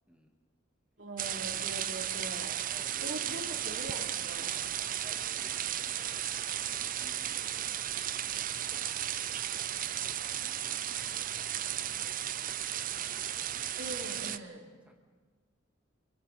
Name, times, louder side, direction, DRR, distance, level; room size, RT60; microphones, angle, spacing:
voice 1, 1.0-2.6 3.0-4.5 13.8-14.6, right 1 dB, 65° right, -1 dB, 3.6 m, -42 dB
sound 1, 1.2-14.4, right 11 dB, 45° right, 0.6 m, -35 dB
voice 2, 2.7-3.6 4.4-9.1 9.7-12.7 13.1-14.0 14.7-14.9, equal, 5° right, 1 dB, 2.2 m, -58 dB
29.0 x 23.5 x 4.4 m, 1.4 s
head